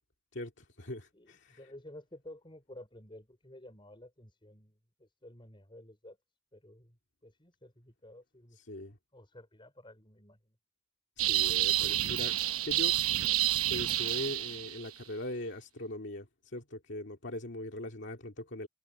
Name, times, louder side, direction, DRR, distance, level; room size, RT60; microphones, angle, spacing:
voice 1, 0.3-1.6 8.7-9.0 11.2-12.4 12.6-13.0 13.7-18.7, left 1 dB, 55° left, 2.3 m, -40 dB
voice 2, 1.1-6.2 6.5-8.6 9.1-10.5, left 1 dB, 25° left, 4.8 m, -53 dB
sound 1, 11.2-14.9, right 13 dB, 90° right, 1.0 m, -29 dB
head